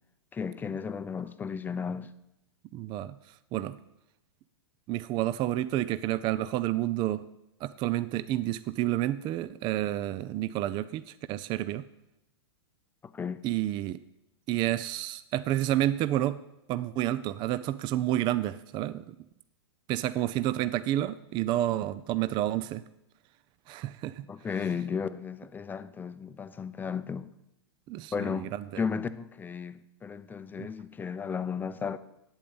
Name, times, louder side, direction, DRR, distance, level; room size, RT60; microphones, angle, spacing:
voice 1, 0.3-2.1 13.0-13.4 24.3-27.3 28.1-32.0, left 6 dB, 15° left, 0.6 m, -34 dB
voice 2, 2.7-3.2 3.5-3.8 4.9-7.2 7.6-11.8 13.4-14.0 14.5-16.4 16.7-19.1 19.9-22.8 23.7-24.3 27.9-28.8 30.6-30.7, right 14 dB, 30° right, 0.5 m, -30 dB
8.8 x 8.6 x 8.8 m
hypercardioid pair, 120°, 14 cm